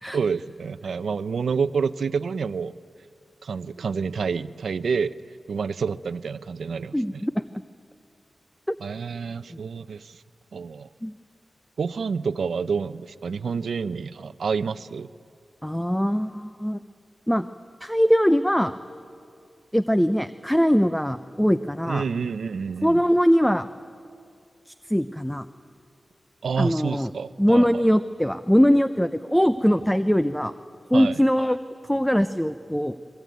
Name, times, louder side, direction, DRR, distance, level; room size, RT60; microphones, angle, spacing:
voice 1, 0.1-2.7 3.4-5.1 5.5-7.2 8.8-10.2 10.5-10.9 11.8-15.1 21.9-23.0 26.4-27.8 30.9-31.2, right 5 dB, 90° right, 14 dB, 0.6 m, -28 dB
voice 2, 6.9-7.4 8.7-8.8 9.5-9.6 11.0-11.1 15.6-16.8 17.3-17.5 17.8-18.7 19.7-22.0 22.8-23.7 24.9-25.5 26.6-27.1 27.4-30.5 30.9-31.6 31.9-32.9, equal, 5° left, 11 dB, 0.6 m, -21 dB
28.0 x 22.0 x 9.3 m, 2.4 s
wide cardioid pair, 110°, 0 cm